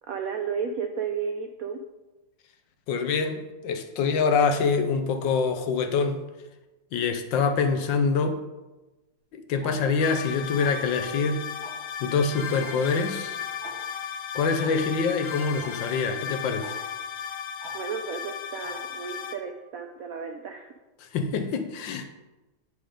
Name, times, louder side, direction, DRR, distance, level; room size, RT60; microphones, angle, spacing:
voice 1, 0.1-1.8 17.7-20.7, right 6 dB, 80° right, 5 dB, 0.8 m, -33 dB
voice 2, 2.9-6.2 6.9-8.4 9.3-11.4 12.0-13.4 14.3-16.8 21.1-22.1, left 5 dB, 70° left, 7 dB, 1.4 m, -25 dB
Tick-tock, 9.6-9.7 10.6-10.9 11.6-11.9 12.6-12.7 13.0-13.1 13.6-13.7 14.6-14.7 15.6-15.7 16.6-16.7 17.6-17.7 18.6-18.7, right 4 dB, 35° right, 1.7 m, -43 dB
sound 1, 10.0-19.4, left 8 dB, 85° left, 1.7 m, -35 dB
9.2 x 5.0 x 5.0 m, 1.1 s
omnidirectional pair, 2.2 m